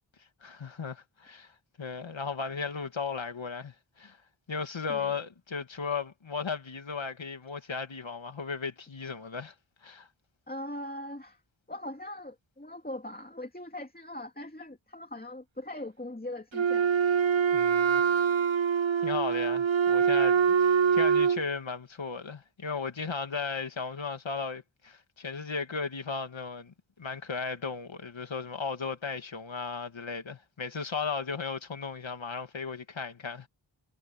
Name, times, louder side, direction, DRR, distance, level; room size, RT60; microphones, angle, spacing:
voice 1, 0.4-4.2 4.5-9.5 9.8-10.1 17.5-18.0 19.0-33.5, left 5 dB, 85° left, 2.3 m, -36 dB
voice 2, 10.5-11.4 11.7-16.9, left 1 dB, 20° left, 2.4 m, -40 dB
Wind instrument woodwind instrument, 16.5-21.4, right 6 dB, 85° right, 2.2 m, -24 dB
wide cardioid pair, 75°, 45 cm